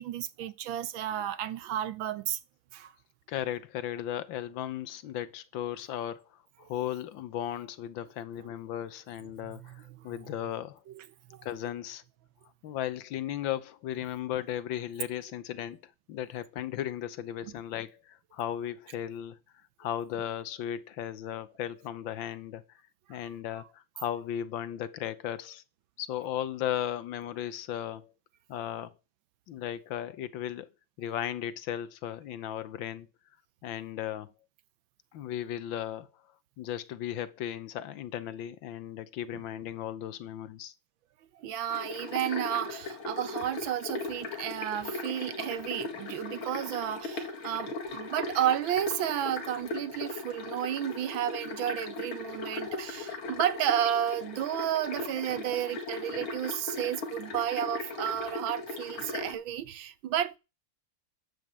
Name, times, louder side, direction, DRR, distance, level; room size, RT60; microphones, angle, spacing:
voice 1, 0.0-2.4 2.7-2.9 9.2-10.4 10.9-11.5 17.4-17.5 23.1-23.2 23.6-23.7 31.2-31.3 39.3-39.4 41.4-60.4, right 11 dB, 75° right, 1.6 m, -32 dB
voice 2, 3.3-10.8 11.4-12.0 12.6-19.4 19.8-22.8 23.1-25.6 26.0-28.1 28.5-28.9 29.5-30.7 31.0-33.1 33.6-34.3 35.1-36.1 36.6-40.7, left 11 dB, 75° left, 1.5 m, -36 dB
sound 1, 41.7-59.3, left 3 dB, 90° left, 2.9 m, -38 dB
11.0 x 5.4 x 7.4 m
omnidirectional pair, 2.2 m